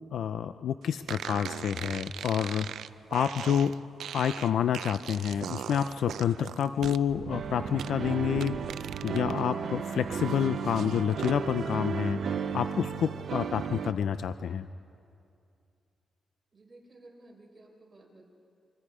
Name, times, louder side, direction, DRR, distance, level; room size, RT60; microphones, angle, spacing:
voice 1, 0.1-2.7 3.1-3.7 4.1-8.5 9.0-12.2 12.5-14.7, left 8 dB, 75° left, 11 dB, 0.5 m, -28 dB
sound 1, 1.1-9.4 9.7-11.4, right 9 dB, 85° right, 0.5 m, -40 dB
sound 2, 7.3-13.9, right 6 dB, 55° right, 0.8 m, -34 dB
voice 2, 16.5-18.3, right 2 dB, 20° right, -1 dB, 4.5 m, -54 dB
25.5 x 25.5 x 5.0 m, 2.5 s
wide cardioid pair, 140°, 0 cm